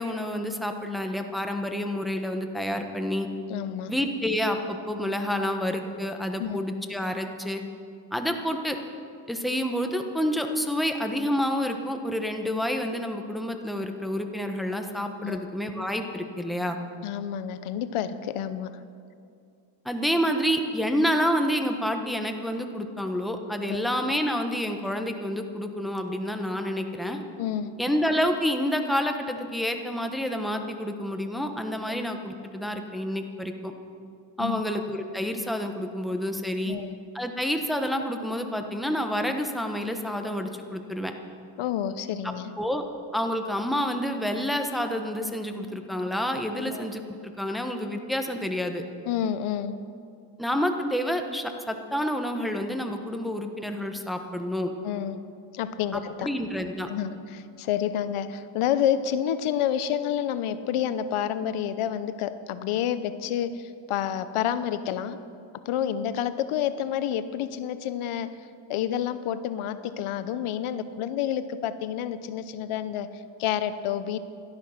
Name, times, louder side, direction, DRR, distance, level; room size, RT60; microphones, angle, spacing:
voice 1, 0.0-3.3 3.9-7.6 8.1-8.8 9.3-16.8 19.8-27.2 27.8-33.7 34.4-36.8 37.1-41.1 42.6-42.8 43.1-48.8 50.4-54.7 55.9-56.9, equal, ahead, 5 dB, 1.2 m, -28 dB
voice 2, 3.5-3.9 6.4-6.6 15.2-15.5 17.0-18.8 23.7-23.8 27.4-27.7 31.9-32.0 34.4-34.6 36.6-37.0 41.6-42.5 46.7-46.9 49.1-49.8 54.8-55.2 55.5-56.3 56.9-65.2 65.6-74.2, left 10 dB, 80° left, 13 dB, 0.9 m, -29 dB
17.5 x 12.5 x 5.9 m, 2.4 s
cardioid pair, 105°, 49 cm